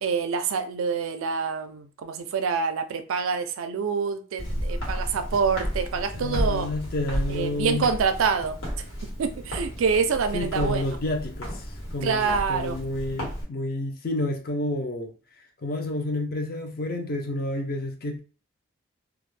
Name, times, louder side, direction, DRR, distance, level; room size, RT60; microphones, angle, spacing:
voice 1, 0.0-6.7 7.3-8.6 9.2-10.8 12.0-12.8, right 5 dB, 85° right, 0.4 m, -26 dB
Walk footsteps, 4.4-13.4, equal, 80° left, 1.3 m, -33 dB
voice 2, 6.1-7.9 10.3-15.1 15.6-18.2, left 2 dB, 45° left, 0.5 m, -30 dB
2.3 x 2.1 x 3.1 m
head